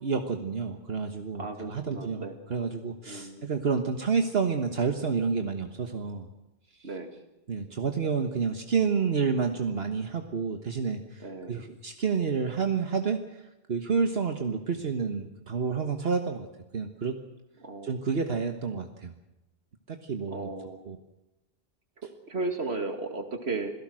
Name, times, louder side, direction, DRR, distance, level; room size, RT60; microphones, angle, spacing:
voice 1, 0.0-6.3 6.8-6.9 7.5-13.4 13.7-16.5 16.7-17.2 17.8-19.1 19.9-20.5 20.9-21.0, right 5 dB, 70° right, 5 dB, 1.6 m, -29 dB
voice 2, 1.4-2.4 3.1-3.5 6.8-7.1 11.2-11.6 17.6-18.0 20.3-20.8 22.3-23.7, right 3 dB, 90° right, 6 dB, 2.7 m, -35 dB
26.5 x 17.5 x 6.3 m, 0.94 s
omnidirectional pair, 1.1 m